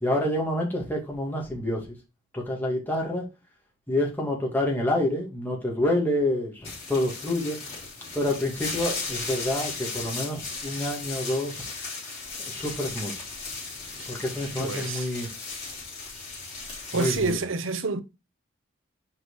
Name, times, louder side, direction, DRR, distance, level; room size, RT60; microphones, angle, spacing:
voice 1, 0.0-1.8 2.3-3.3 3.9-7.6 8.1-11.5 12.4-13.1 14.1-15.3 16.9-17.3, left 1 dB, 10° left, 2.2 m, -27 dB
sound 1, 6.6-17.3, left 4 dB, 30° left, 3.8 m, -36 dB
voice 2, 14.6-15.1 16.9-18.0, right 4 dB, 75° right, 0.8 m, -28 dB
6.1 x 4.7 x 4.8 m
head